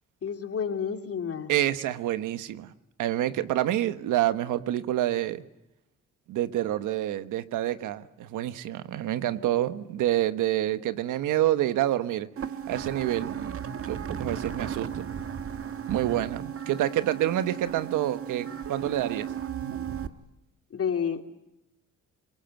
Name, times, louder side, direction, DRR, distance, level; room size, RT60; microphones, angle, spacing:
voice 1, 0.2-1.5 20.7-21.2, left 7 dB, 50° left, 5 dB, 3.1 m, -30 dB
voice 2, 1.5-2.7 3.0-5.4 6.3-12.3 12.7-13.6 13.9-15.1 15.9-19.3, right 13 dB, 85° right, 11 dB, 1.3 m, -27 dB
sound 1, 12.4-20.1, right 8 dB, 45° right, 1.6 m, -35 dB
25.5 x 22.5 x 9.2 m, 0.86 s
cardioid pair, 90°, 30 cm